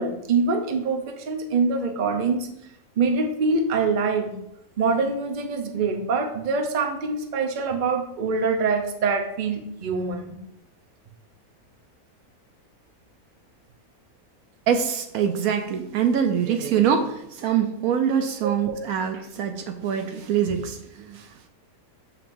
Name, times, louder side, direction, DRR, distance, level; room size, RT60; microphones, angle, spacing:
voice 1, 0.0-2.5 3.0-4.3 4.8-10.4 18.4-18.5, right 4 dB, 45° right, 4 dB, 0.7 m, -24 dB
voice 2, 14.7-21.5, right 8 dB, 75° right, 7 dB, 1.0 m, -24 dB
6.9 x 5.6 x 2.6 m, 0.80 s
omnidirectional pair, 1.6 m